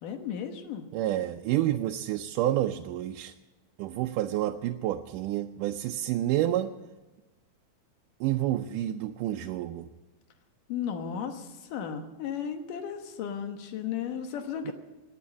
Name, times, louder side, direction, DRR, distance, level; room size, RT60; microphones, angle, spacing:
voice 1, 0.0-0.8 10.7-14.7, left 8 dB, 85° left, 6 dB, 2.8 m, -35 dB
voice 2, 0.9-3.3 3.8-6.7 8.2-9.9 14.7-14.8, right 13 dB, 85° right, 4 dB, 2.2 m, -29 dB
18.0 x 9.2 x 8.5 m, 1.1 s
omnidirectional pair, 3.7 m